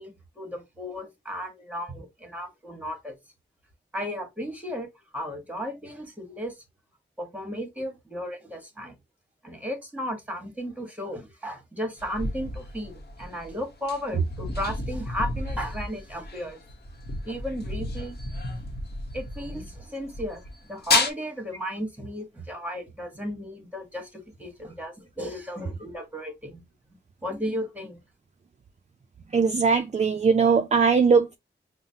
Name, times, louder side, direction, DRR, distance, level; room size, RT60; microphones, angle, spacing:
voice 1, 0.0-3.1 3.9-6.5 7.2-9.0 9.4-16.6 17.2-18.2 19.1-20.4 20.7-26.6 27.2-28.0, equal, 10° right, 1.2 m, -34 dB
sound 1, 12.0-19.8 20.0-21.1, left 2 dB, 55° left, 0.9 m, -31 dB
voice 2, 29.3-31.3, right 5 dB, 35° right, 0.4 m, -20 dB
5.5 x 2.1 x 2.7 m
wide cardioid pair, 115°, 19 cm